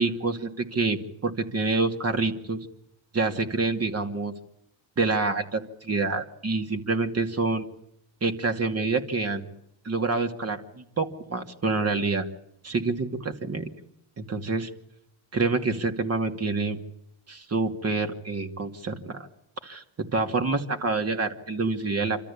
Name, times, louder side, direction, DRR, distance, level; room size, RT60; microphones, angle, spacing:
voice 1, 0.0-2.6 3.1-4.3 5.0-7.7 8.2-9.5 9.8-12.2 12.6-13.7 14.2-14.7 15.3-16.8 17.3-19.3 19.6-19.8 20.1-22.2, right 3 dB, 35° right, 6 dB, 2.6 m, -27 dB
26.5 x 13.5 x 8.6 m, 0.79 s
cardioid pair, 90°, 42 cm